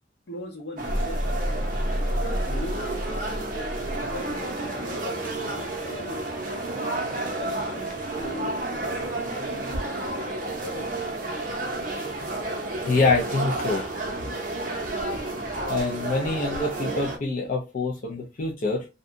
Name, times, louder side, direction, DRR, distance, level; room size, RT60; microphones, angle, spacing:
voice 1, 0.3-1.6 2.2-6.2 6.6-10.0 10.6-11.0, left 1 dB, 70° left, 0.8 m, -40 dB
sound 1, 0.8-4.5, equal, 10° right, 0.8 m, -30 dB
sound 2, 0.8-17.2, right 2 dB, 50° right, 0.6 m, -31 dB
voice 2, 12.8-13.9 15.7-18.9, left 3 dB, 50° left, 0.4 m, -25 dB
2.6 x 2.2 x 2.5 m
head